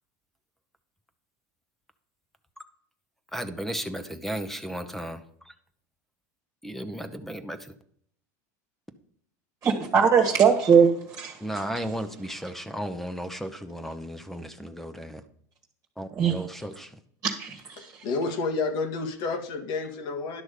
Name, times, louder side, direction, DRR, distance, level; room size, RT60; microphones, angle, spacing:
voice 1, 3.3-5.5 6.6-7.7 11.4-15.2 16.0-16.9, equal, 5° left, 10 dB, 0.9 m, -35 dB
voice 2, 9.6-11.4 16.1-16.4 17.2-18.0, right 6 dB, 30° right, 2 dB, 1.6 m, -21 dB
voice 3, 17.8-20.4, left 3 dB, 55° left, 6 dB, 1.6 m, -30 dB
11.5 x 6.2 x 5.1 m, 0.64 s
supercardioid pair, 110°, 9 cm